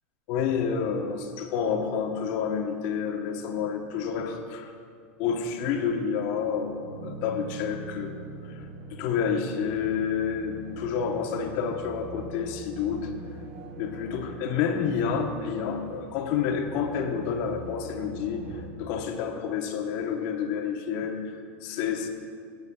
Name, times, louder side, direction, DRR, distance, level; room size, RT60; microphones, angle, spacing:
voice 1, 0.3-4.7 5.2-8.1 8.5-13.1 13.8-22.1, left 6 dB, 55° left, 4 dB, 1.1 m, -29 dB
sound 1, 6.8-18.7, right 2 dB, 70° right, 1.9 m, -42 dB
18.5 x 8.1 x 2.3 m, 2.1 s
supercardioid pair, 125°, 7 cm